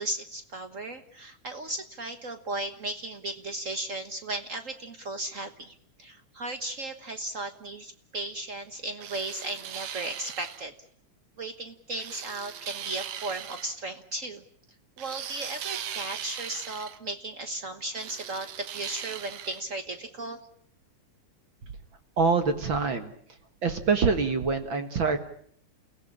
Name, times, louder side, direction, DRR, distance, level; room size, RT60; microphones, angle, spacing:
voice 1, 0.0-10.7 11.4-14.4 15.0-20.4, right 2 dB, 85° right, 8 dB, 0.7 m, -36 dB
sound 1, 9.0-10.6 12.0-13.7 15.0-17.0 17.9-19.6, right 10 dB, 65° right, 2.4 m, -39 dB
voice 2, 22.2-23.1 23.6-25.2, right 5 dB, 45° right, 8 dB, 2.0 m, -25 dB
30.0 x 16.5 x 9.9 m, 0.65 s
omnidirectional pair, 3.5 m